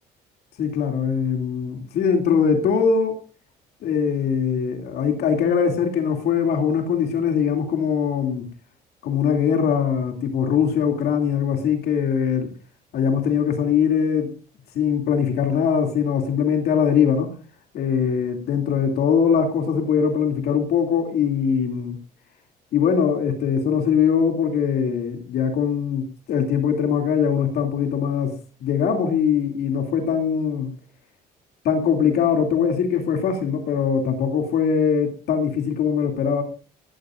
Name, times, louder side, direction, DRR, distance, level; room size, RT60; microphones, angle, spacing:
voice 1, 0.6-3.1 3.8-8.5 9.0-12.5 12.9-14.3 14.7-17.3 17.7-22.0 22.7-30.7 31.6-36.4, left 7 dB, 70° left, 2.7 m, -21 dB
20.0 x 14.5 x 2.5 m
cardioid pair, 110°, 17 cm